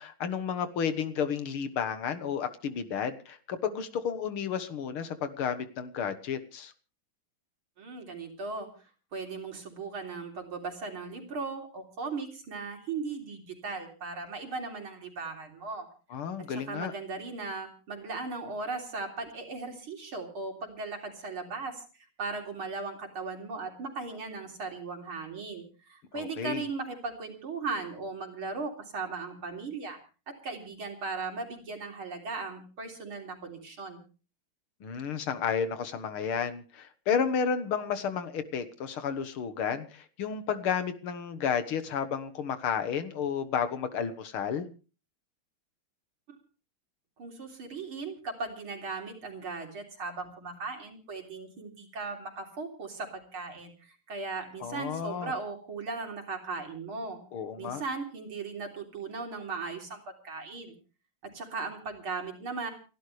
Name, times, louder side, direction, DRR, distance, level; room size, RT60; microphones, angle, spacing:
voice 1, 0.0-6.7 16.1-16.9 26.1-26.6 34.8-44.7 54.6-55.3 57.3-57.8, left 7 dB, 90° left, 11 dB, 2.3 m, -32 dB
voice 2, 7.8-8.7 9.1-15.9 16.4-21.8 22.2-30.0 30.3-34.0 47.2-57.2 57.6-60.8 61.2-62.7, right 4 dB, 80° right, 3 dB, 4.3 m, -37 dB
29.5 x 12.0 x 3.3 m, 0.35 s
omnidirectional pair, 2.3 m